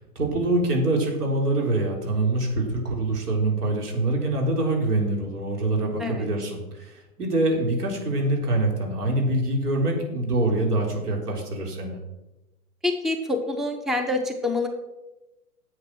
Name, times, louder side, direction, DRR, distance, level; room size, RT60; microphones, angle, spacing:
voice 1, 0.2-12.0, right 2 dB, 85° right, 0 dB, 3.9 m, -25 dB
voice 2, 12.8-14.7, left 2 dB, ahead, 5 dB, 0.6 m, -26 dB
10.5 x 7.8 x 6.0 m, 1.0 s
hypercardioid pair, 120°, 45 cm